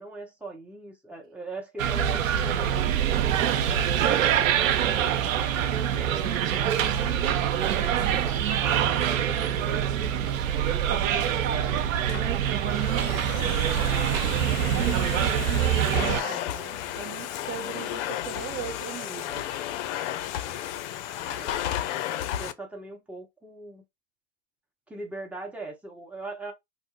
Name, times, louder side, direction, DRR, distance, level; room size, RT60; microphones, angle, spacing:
voice 1, 0.0-3.9 4.4-7.2 7.7-10.2 21.2-23.8 24.9-26.5, right 2 dB, 5° right, 0.9 m, -41 dB
sound 1, 1.8-16.2, right 9 dB, 80° right, 0.6 m, -25 dB
voice 2, 10.7-14.3 14.7-19.5, right 7 dB, 25° right, 0.6 m, -39 dB
Domestic sounds home sounds, 11.8-22.5, left 11 dB, 65° left, 0.5 m, -33 dB
2.6 x 2.0 x 3.6 m
hypercardioid pair, 105°, 39 cm